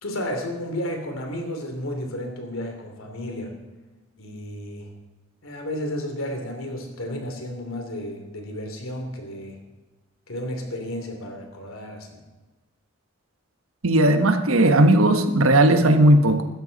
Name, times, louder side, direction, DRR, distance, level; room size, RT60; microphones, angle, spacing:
voice 1, 0.0-3.5 4.2-4.9 5.4-9.6 10.3-12.2, left 1 dB, 80° left, 3 dB, 3.0 m, -32 dB
voice 2, 13.8-16.5, right 1 dB, 85° right, 7 dB, 1.3 m, -17 dB
16.5 x 13.0 x 4.1 m, 1.2 s
head